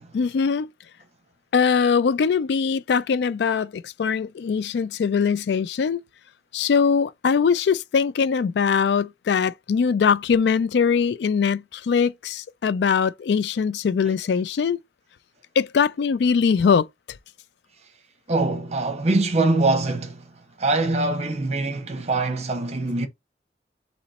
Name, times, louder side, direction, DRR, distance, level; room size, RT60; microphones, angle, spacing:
voice 1, 0.1-0.7 1.5-6.0 6.5-14.8 15.6-16.9, left 6 dB, 70° left, 0.3 m, -21 dB
voice 2, 18.3-20.2 20.6-23.1, right 2 dB, 40° right, 0.9 m, -23 dB
4.0 x 3.0 x 4.2 m
head